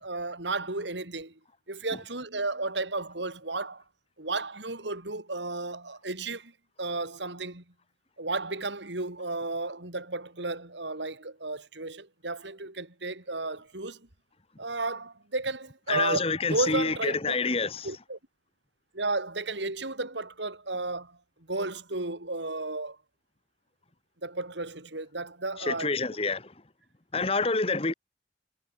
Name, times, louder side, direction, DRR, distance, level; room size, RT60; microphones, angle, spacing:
voice 1, 0.0-1.4 1.7-3.8 4.2-6.5 6.8-7.6 8.2-14.1 14.6-17.4 17.8-18.2 18.9-21.2 21.5-23.0 24.2-26.0, right 2 dB, 80° right, 3.9 m, -33 dB
voice 2, 15.9-17.9 25.7-26.5 27.1-27.9, left 4 dB, 30° left, 1.2 m, -27 dB
head